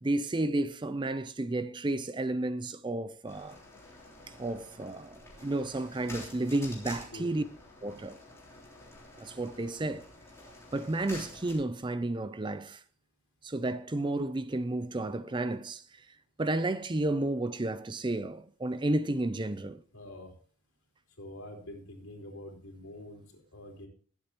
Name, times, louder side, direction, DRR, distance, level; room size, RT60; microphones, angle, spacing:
voice 1, 0.0-3.6 4.4-7.4 7.8-8.2 9.2-10.1 10.7-12.8 13.4-16.1 16.4-19.8, right 2 dB, 20° right, 0.5 m, -32 dB
sound 1, 3.3-11.5, left 2 dB, 15° left, 3.3 m, -49 dB
voice 2, 19.9-20.3 21.2-23.9, left 1 dB, 70° left, 4.2 m, -46 dB
21.5 x 8.2 x 3.0 m
head